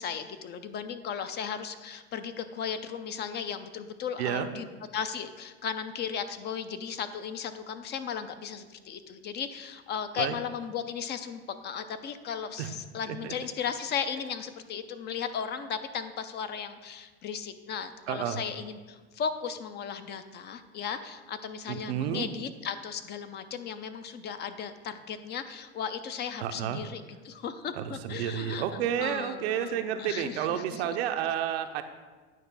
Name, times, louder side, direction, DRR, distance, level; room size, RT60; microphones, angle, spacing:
voice 1, 0.0-4.7 4.9-31.0, left 7 dB, 35° left, 10 dB, 0.5 m, -36 dB
voice 2, 18.1-18.4 21.7-22.3 26.4-26.8 27.7-31.8, right 10 dB, 80° right, 7 dB, 0.7 m, -31 dB
9.2 x 3.2 x 6.0 m, 1.3 s
supercardioid pair, 105°, 31 cm